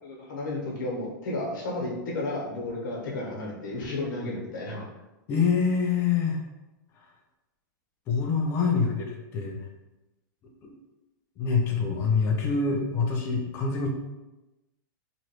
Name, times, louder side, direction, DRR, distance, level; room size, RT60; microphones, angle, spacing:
voice 1, 0.0-4.9 8.7-8.8, left 2 dB, 65° left, -3 dB, 1.1 m, -33 dB
voice 2, 5.3-6.4 8.1-9.6 10.6-10.7 11.4-13.9, left 5 dB, 20° left, 1 dB, 0.4 m, -25 dB
3.0 x 2.5 x 2.9 m, 1.0 s
supercardioid pair, 160°, 11 cm